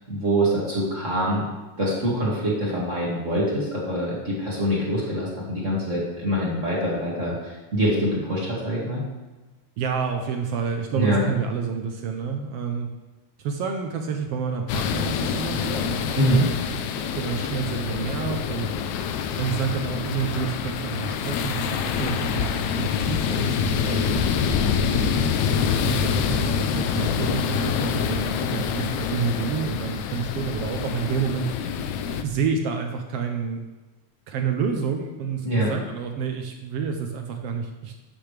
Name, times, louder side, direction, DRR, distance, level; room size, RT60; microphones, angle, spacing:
voice 1, 0.1-1.4 1.8-9.0 10.9-11.2 16.2-16.4 35.4-35.7, right 1 dB, 25° right, -5 dB, 2.2 m, -24 dB
voice 2, 9.8-12.9 13.4-18.7 19.4-22.5 22.8-24.3 24.6-25.3 25.7-31.5 32.2-33.6 34.3-37.9, right 6 dB, 75° right, 4 dB, 1.4 m, -29 dB
sound 1, 14.7-32.2, left 7 dB, 80° left, 1.9 m, -26 dB
12.0 x 8.5 x 3.3 m, 1.2 s
omnidirectional pair, 3.4 m